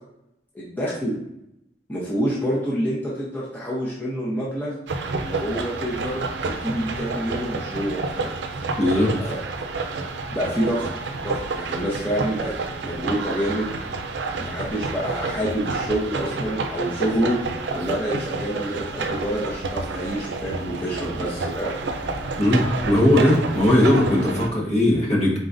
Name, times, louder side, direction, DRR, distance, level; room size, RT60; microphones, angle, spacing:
voice 1, 0.5-1.1 1.9-4.7 5.1-8.3 9.2-9.4 10.3-10.9 11.2-12.5 12.8-13.7 14.4-17.3 17.7-21.7 25.3-25.4, equal, 10° left, -7 dB, 0.8 m, -27 dB
sound 1, 4.9-24.5, right 3 dB, 85° right, 0.5 m, -29 dB
voice 2, 8.8-9.3 22.4-25.4, left 1 dB, 40° left, -3 dB, 1.2 m, -19 dB
4.1 x 3.8 x 2.5 m, 0.82 s
head